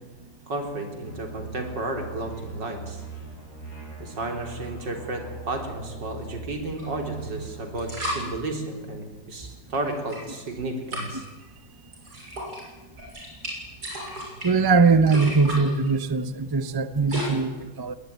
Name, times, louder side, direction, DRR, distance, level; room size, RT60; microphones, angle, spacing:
voice 1, 0.5-3.0 4.0-11.3, right 2 dB, 75° right, 4 dB, 4.1 m, -32 dB
sound 1, 1.0-6.5 6.8-8.2, right 4 dB, 60° left, 6.3 m, -40 dB
sound 2, 6.8-6.9 7.7-8.2 9.9-10.5 10.9-11.3 11.9-12.6 12.9-17.2, equal, 60° right, 7.6 m, -35 dB
voice 2, 14.4-17.9, right 4 dB, 25° right, 13 dB, 0.4 m, -21 dB
20.0 x 19.5 x 9.4 m, 1.2 s
omnidirectional pair, 1.9 m